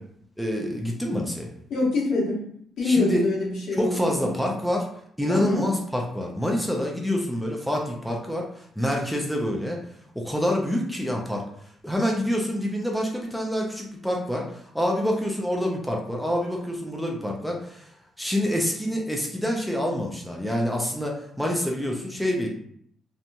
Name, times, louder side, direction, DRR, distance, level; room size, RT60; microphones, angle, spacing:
voice 1, 0.4-1.5 2.8-3.2 3.8-4.9 5.2-9.8 10.2-11.4 11.8-17.9 18.2-22.5, equal, ahead, -1 dB, 0.5 m, -27 dB
voice 2, 1.7-2.4 2.8-4.3 5.3-5.6, left 3 dB, 70° left, -5 dB, 1.1 m, -25 dB
2.8 x 2.5 x 2.2 m, 0.66 s
cardioid pair, 90°, 0 cm